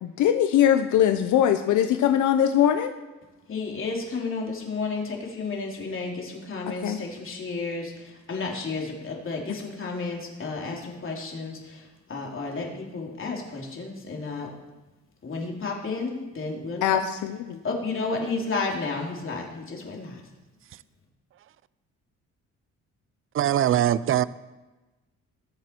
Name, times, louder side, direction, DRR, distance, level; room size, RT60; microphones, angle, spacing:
voice 1, 0.0-2.9 6.8-7.0 16.8-17.6, left 10 dB, 80° left, 0.8 m, -21 dB
voice 2, 3.5-14.5 15.2-17.0 17.6-20.2, left 3 dB, 45° left, 3.2 m, -32 dB
voice 3, 23.3-24.2, right 11 dB, 45° right, 0.5 m, -21 dB
20.0 x 7.6 x 4.5 m
cardioid pair, 90°, 30 cm